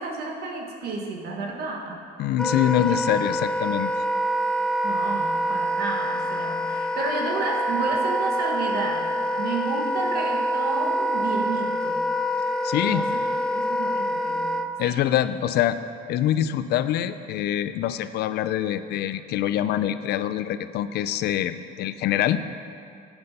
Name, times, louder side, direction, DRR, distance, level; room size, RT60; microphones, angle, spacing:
voice 1, 0.0-2.0 3.3-3.5 4.8-9.1 9.4-12.0 12.8-14.9, right 3 dB, 70° right, 0 dB, 1.4 m, -31 dB
voice 2, 2.2-3.9 12.6-13.1 14.8-15.8 16.1-22.4, left 11 dB, 70° left, 13 dB, 0.5 m, -25 dB
Wind instrument woodwind instrument, 2.4-14.7, equal, 5° left, 0.6 m, -26 dB
9.6 x 7.9 x 5.3 m, 2.4 s
cardioid pair, 110°, 17 cm